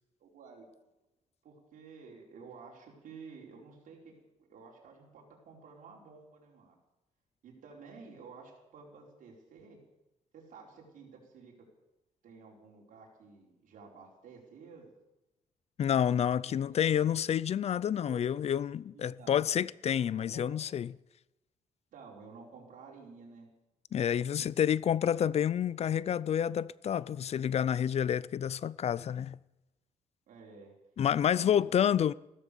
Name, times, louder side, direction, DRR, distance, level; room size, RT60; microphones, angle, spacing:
voice 1, 0.2-0.7 1.4-6.7 7.4-9.8 10.3-11.5 12.2-14.9 16.5-16.8 18.0-18.5 18.9-19.4 20.0-20.4 21.9-23.5 24.1-24.5 30.3-30.7 31.1-32.0, right 4 dB, 75° right, 4.8 m, -52 dB
voice 2, 15.8-20.9 23.9-29.4 31.0-32.1, left 9 dB, 50° left, 0.5 m, -29 dB
15.5 x 13.5 x 7.0 m
cardioid pair, 115°, 14 cm